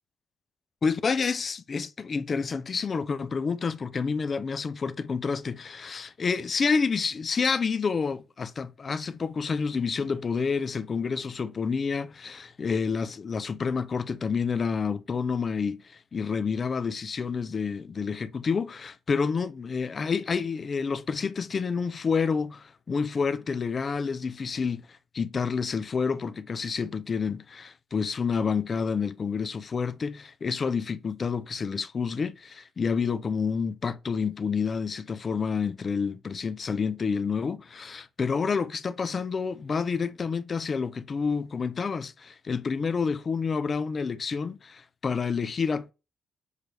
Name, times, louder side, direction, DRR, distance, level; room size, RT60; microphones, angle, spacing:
voice 1, 0.8-45.9, left 5 dB, 40° left, 0.4 m, -29 dB
6.4 x 2.5 x 3.3 m
cardioid pair, 90°, 0 cm